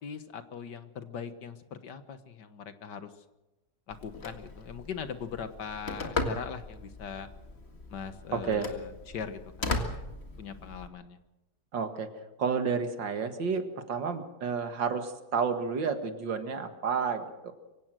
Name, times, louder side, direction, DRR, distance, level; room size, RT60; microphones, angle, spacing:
voice 1, 0.0-3.1 3.9-7.3 7.9-9.9 10.4-11.2, left 6 dB, 70° left, 10 dB, 1.9 m, -40 dB
Telephone, 3.9-10.9, left 2 dB, 35° left, 2.1 m, -37 dB
voice 2, 8.3-8.7 11.7-12.1 12.4-17.5, right 5 dB, 85° right, 7 dB, 2.5 m, -31 dB
24.5 x 16.5 x 6.4 m, 0.99 s
omnidirectional pair, 1.9 m